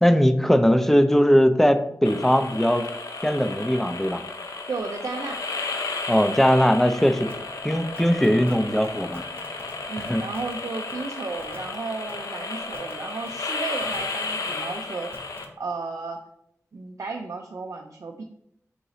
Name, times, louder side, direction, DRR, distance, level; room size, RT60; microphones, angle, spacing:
voice 1, 0.0-2.8 3.2-4.2 6.1-7.3 7.6-9.2 10.0-10.2, equal, 5° left, 9 dB, 0.4 m, -20 dB
sound 1, 2.0-15.4, left 3 dB, 80° left, 0.5 m, -33 dB
voice 2, 4.7-5.4 9.9-15.1 15.6-16.2 16.7-18.2, right 4 dB, 65° right, 3 dB, 0.4 m, -33 dB
sound 2, 7.3-7.4 8.0-8.5 8.8-8.9 9.1-9.7 10.0-10.5 10.9-11.0 11.4-11.6 12.1-12.2 12.7-12.9 13.3-13.4 13.8-14.5 15.1-15.5, right 2 dB, 45° right, 0.8 m, -48 dB
3.9 x 2.8 x 4.1 m, 0.74 s
wide cardioid pair, 85°, 6 cm